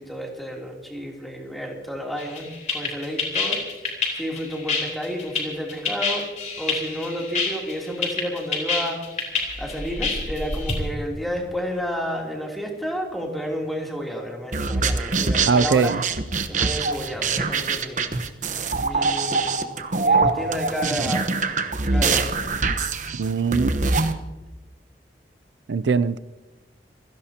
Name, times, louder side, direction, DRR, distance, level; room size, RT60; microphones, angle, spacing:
voice 1, 0.0-3.6 4.1-6.2 6.6-9.0 9.6-15.9 16.5-18.1 18.8-19.6 20.0-21.3 21.8-22.4, equal, ahead, -1 dB, 3.0 m, -31 dB
sound 1, 2.2-10.8, left 4 dB, 45° left, 4.0 m, -27 dB
sound 2, 14.5-24.1, right 4 dB, 45° right, 1.0 m, -23 dB
voice 2, 15.4-16.0 23.2-24.0 25.7-26.2, right 5 dB, 90° right, 16 dB, 0.5 m, -21 dB
27.5 x 17.0 x 2.9 m, 1.1 s
head